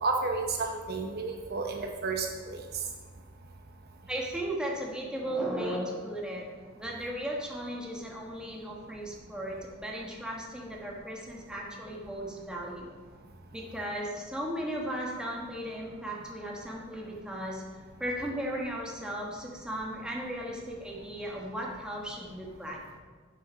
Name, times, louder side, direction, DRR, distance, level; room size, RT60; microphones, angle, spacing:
voice 1, 0.0-2.6, right 3 dB, 50° right, 3 dB, 0.8 m, -31 dB
voice 2, 4.1-6.5 6.8-12.9 13.5-17.7 18.0-22.8, right 1 dB, 5° right, -2 dB, 1.4 m, -36 dB
7.5 x 6.8 x 5.5 m, 1.5 s
head